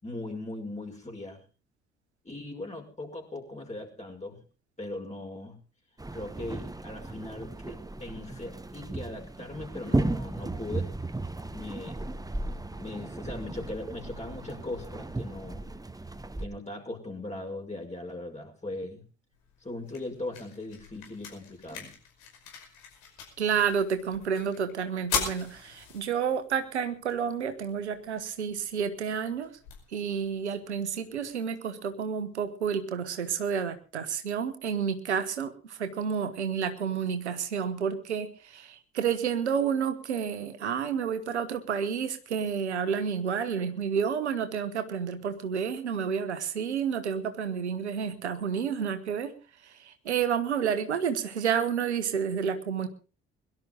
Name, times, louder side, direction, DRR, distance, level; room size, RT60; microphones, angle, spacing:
voice 1, 0.0-1.4 2.2-4.4 4.8-5.6 6.1-10.9 11.5-12.0 12.8-15.7 16.4-19.0 19.6-21.9, left 2 dB, 20° left, 1 dB, 5.8 m, -39 dB
sound 1, 6.0-16.5, right 2 dB, 10° right, 1.3 m, -35 dB
sound 2, 19.3-31.3, left 6 dB, 65° left, 5.4 m, -41 dB
voice 2, 23.4-29.5 29.9-49.3 49.6-52.9, right 7 dB, 85° right, 10 dB, 1.2 m, -30 dB
22.0 x 12.0 x 3.9 m, 0.35 s
figure-of-eight pair, 45°, 33 cm